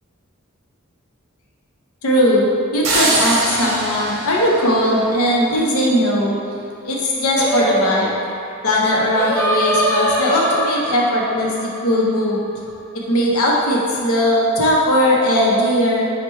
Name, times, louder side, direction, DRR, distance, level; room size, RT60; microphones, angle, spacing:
voice 1, 2.0-2.4 2.7-6.4 6.8-8.1 8.6-12.4 12.9-16.0, equal, 85° left, -3 dB, 0.7 m, -18 dB
sound 1, 2.8-5.7, right 2 dB, 75° right, 0.7 m, -23 dB
Singing, 7.4-12.7, equal, 10° left, 0.6 m, -23 dB
4.5 x 2.1 x 4.3 m, 2.4 s
head